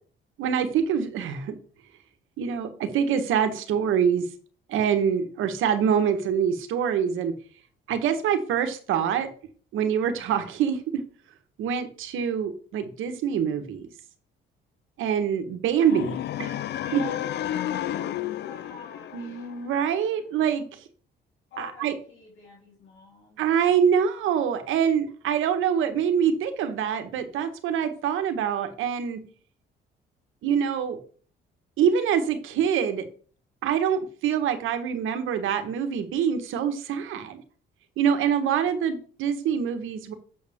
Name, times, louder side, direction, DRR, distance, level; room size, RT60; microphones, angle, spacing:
voice 1, 0.4-1.5 2.4-4.2 4.7-7.3 7.9-9.3 9.7-11.0 11.6-13.9 15.0-16.6 16.9-17.0 19.1-20.7 21.6-21.9 23.4-29.2 30.4-31.0 31.8-33.0 33.6-37.4 38.0-40.1, right 8 dB, 85° right, 8 dB, 1.3 m, -25 dB
sound 1, 15.8-19.9, left 12 dB, 60° left, 0.4 m, -32 dB
voice 2, 16.8-19.5 21.5-23.4, left 4 dB, 75° left, -4 dB, 3.1 m, -45 dB
7.6 x 6.8 x 3.6 m, 0.42 s
cardioid pair, 100°, 20 cm